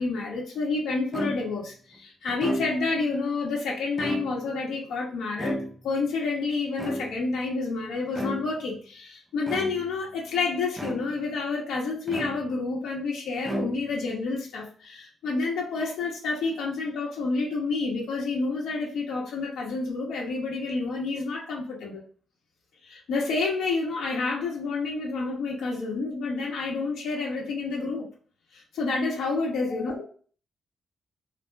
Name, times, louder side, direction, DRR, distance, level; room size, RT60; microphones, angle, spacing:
voice 1, 0.0-22.0 22.8-28.1 28.5-30.0, left 3 dB, 85° left, -3 dB, 1.1 m, -29 dB
sound 1, 1.1-1.7 2.3-3.0 3.8-4.6 5.4-6.1 6.8-7.4 8.1-8.7 9.4-10.0 10.8-11.4 12.1-12.8 13.4-14.1, right 1 dB, 5° right, 0.4 m, -34 dB
4.2 x 2.3 x 3.4 m, 0.42 s
wide cardioid pair, 180°, 0 cm